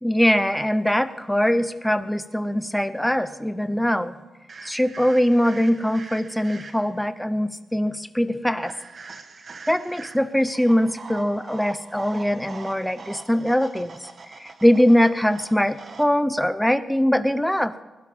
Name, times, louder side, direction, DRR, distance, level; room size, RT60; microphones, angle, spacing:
voice 1, 0.0-4.2 4.6-8.7 9.7-14.0 14.4-17.7, equal, 5° left, 12 dB, 0.9 m, -22 dB
sound 1, 4.5-7.1 8.6-16.1, right 4 dB, 50° right, 1.5 m, -43 dB
20.5 x 12.0 x 5.7 m, 1.2 s
cardioid pair, 90°, 0 cm